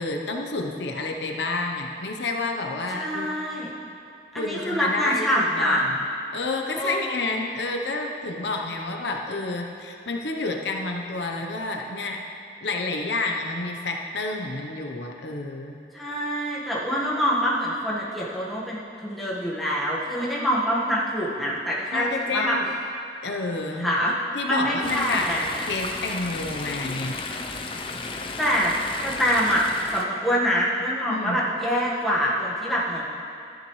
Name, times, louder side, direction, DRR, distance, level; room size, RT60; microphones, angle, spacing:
voice 1, 0.0-3.3 4.3-5.3 5.6-6.0 6.3-12.2 12.6-15.8 21.9-22.7 23.2-25.3 25.7-27.2 31.1-31.4, left 3 dB, 75° left, 2 dB, 0.8 m, -29 dB
voice 2, 2.9-3.7 4.3-5.8 6.7-7.1 15.9-22.6 23.7-24.1 24.4-25.5 28.4-28.7 29.0-29.7 29.9-33.0, equal, ahead, -7 dB, 1.4 m, -25 dB
Chatter / Stream, 24.8-30.0, left 3 dB, 30° left, 0.5 m, -34 dB
13.5 x 10.5 x 3.2 m, 2.5 s
head